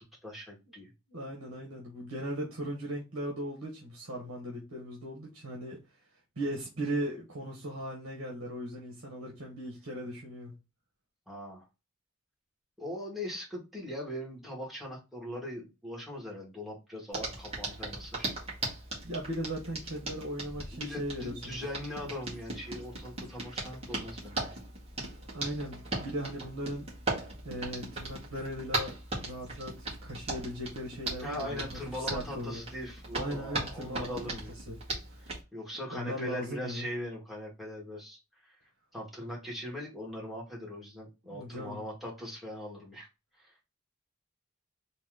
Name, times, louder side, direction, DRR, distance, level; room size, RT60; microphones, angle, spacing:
voice 1, 0.2-0.9 11.3-11.7 12.8-18.3 20.7-24.4 31.2-34.6 35.2-38.6 38.9-43.1 43.4-43.5, left 1 dB, ahead, 1.9 m, -40 dB
voice 2, 1.1-5.8 6.4-10.5 19.0-21.6 25.3-26.8 27.4-28.9 29.2-32.6 33.1-34.4 34.7-34.8 35.2-35.3 35.9-36.9 41.3-41.8, right 1 dB, 75° right, 1.4 m, -38 dB
Hands, 17.1-35.4, right 2 dB, 30° right, 2.0 m, -38 dB
4.2 x 3.0 x 3.8 m
head